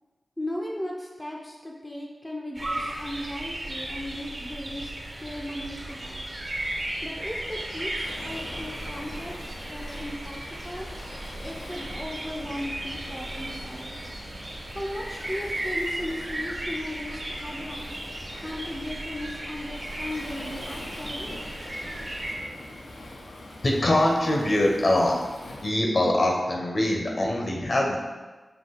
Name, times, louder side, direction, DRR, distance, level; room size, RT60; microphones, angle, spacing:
voice 1, 0.4-4.9 5.2-6.2 7.0-10.4 10.6-10.9 11.4-14.0 14.7-18.0 18.4-21.5, left 1 dB, 10° left, -2 dB, 0.5 m, -36 dB
sound 1, 2.5-22.4, right 1 dB, 40° right, 0.8 m, -35 dB
Waves surf, 8.0-25.7, left 1 dB, 85° left, 0.6 m, -44 dB
voice 2, 23.6-25.2 25.6-28.0, left 1 dB, 55° left, -1 dB, 0.8 m, -23 dB
5.8 x 2.3 x 3.9 m, 1.3 s
wide cardioid pair, 65°, 0 cm